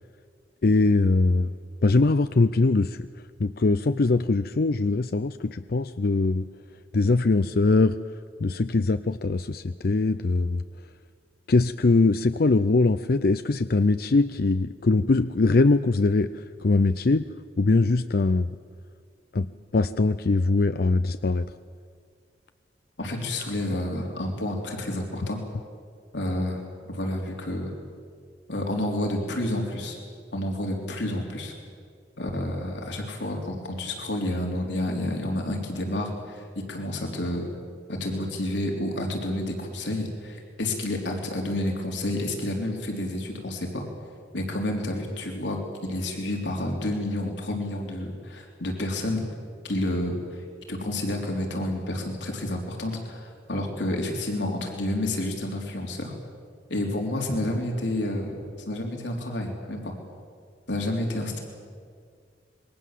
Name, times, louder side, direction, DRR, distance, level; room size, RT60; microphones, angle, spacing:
voice 1, 0.6-1.5 1.8-3.1 3.4-6.5 6.9-8.0 8.4-10.6 11.5-17.3 17.6-18.6 19.3-21.5, left 3 dB, 55° left, 11 dB, 0.5 m, -22 dB
voice 2, 23.0-25.4 26.1-26.6 26.9-27.7 28.5-30.0 30.3-31.5 32.2-37.5 37.9-43.8 44.3-49.3 49.6-56.1 56.7-59.9 60.7-61.4, left 1 dB, 85° left, 1 dB, 3.6 m, -30 dB
27.0 x 22.0 x 7.5 m, 2.1 s
head